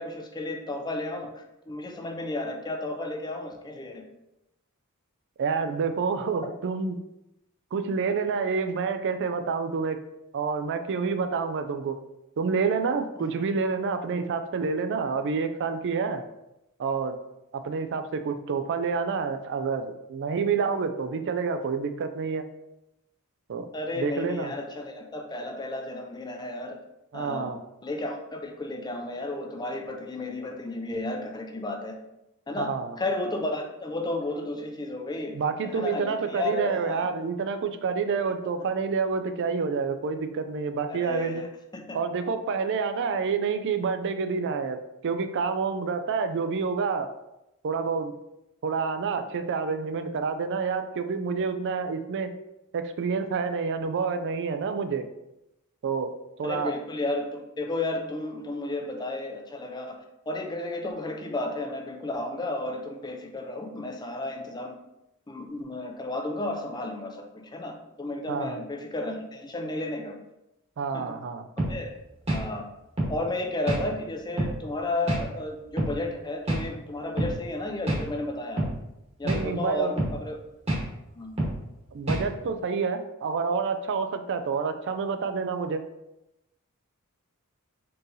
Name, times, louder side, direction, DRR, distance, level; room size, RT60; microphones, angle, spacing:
voice 1, 0.0-4.0 13.2-13.3 23.7-26.8 27.1-27.5 27.8-32.0 32.5-32.7 33.0-35.4 35.6-37.1 40.9-41.5 41.7-42.0 56.4-60.0 60.3-64.7 65.3-70.2 70.9-71.2 71.7-71.9 72.3-72.6 73.1-78.6 79.2-80.4 81.1-81.3, left 2 dB, 20° left, 3 dB, 0.5 m, -33 dB
voice 2, 5.4-7.0 7.7-10.0 10.3-12.0 12.4-16.2 16.8-17.2 17.5-22.4 23.5-23.7 24.0-24.5 27.1-27.6 32.6-33.0 35.3-41.4 41.9-44.8 45.0-47.1 47.6-48.1 48.6-52.3 52.7-55.1 55.8-56.1 56.4-56.7 68.3-68.6 70.8-71.5 79.2-79.9 81.9-85.8, right 5 dB, 55° right, 9 dB, 0.4 m, -28 dB
sound 1, 71.6-71.8 72.3-72.5 73.0-73.2 73.7-73.8 74.4-74.6 75.1-75.2 75.8-76.0 76.5-76.7 77.2-77.3 77.9-78.0 78.6-78.7 79.3-79.5 80.0-80.2 80.7-80.8 81.4-81.6 82.1-82.3, right 1 dB, 30° right, 1.2 m, -27 dB
4.4 x 3.2 x 2.7 m, 0.90 s
head